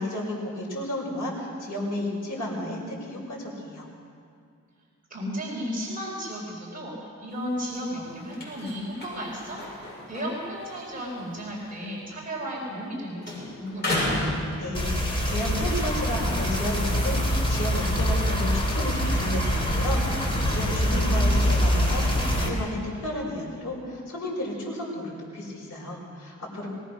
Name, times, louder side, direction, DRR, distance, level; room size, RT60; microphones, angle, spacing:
voice 1, 0.0-3.9 14.6-26.7, left 1 dB, 55° left, -6 dB, 5.4 m, -32 dB
voice 2, 5.1-9.6 10.1-14.2 20.8-21.5, equal, 30° right, -4 dB, 4.5 m, -34 dB
sound 1, 7.3-12.9 13.2-15.2 15.7-18.8, left 1 dB, 35° left, 6.8 m, -35 dB
sound 2, 14.7-22.5, equal, 15° left, 3.6 m, -24 dB
21.5 x 19.0 x 6.3 m, 2.3 s
wide cardioid pair, 150°, 30 cm